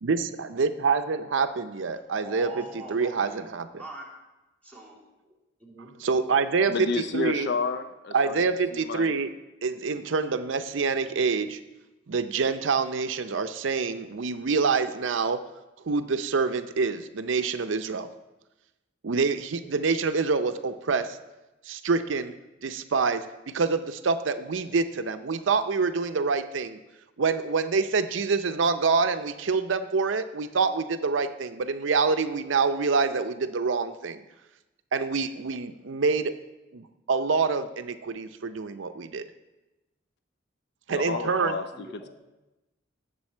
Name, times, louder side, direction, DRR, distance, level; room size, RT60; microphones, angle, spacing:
voice 1, 0.0-2.6 2.9-3.7 6.0-7.5 8.1-9.3 9.6-11.6 12.1-15.4 15.9-18.1 19.0-21.2 21.7-22.3 22.6-26.8 27.2-34.2 34.9-36.3 36.7-39.2 40.9-41.5, right 4 dB, 75° right, 9 dB, 0.6 m, -26 dB
voice 2, 2.2-3.4 3.8-4.1 4.6-5.3 5.6-6.1 41.1-42.1, right 2 dB, 5° left, -4 dB, 3.0 m, -43 dB
voice 3, 6.7-9.2 40.9-42.1, left 4 dB, 60° left, 9 dB, 0.5 m, -31 dB
18.0 x 6.8 x 4.4 m, 1.0 s
head